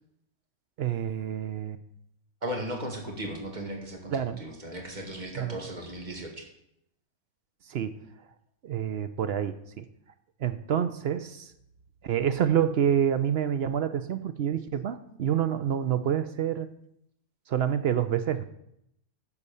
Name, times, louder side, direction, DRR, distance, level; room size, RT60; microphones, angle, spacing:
voice 1, 0.8-1.8 4.1-4.4 5.4-5.6 7.7-7.9 8.6-9.9 10.4-11.5 12.0-16.7 17.5-18.4, right 9 dB, 60° right, 11 dB, 0.7 m, -27 dB
voice 2, 2.4-6.5, right 1 dB, 30° right, 1 dB, 1.9 m, -36 dB
12.0 x 4.2 x 6.8 m, 0.77 s
omnidirectional pair, 1.5 m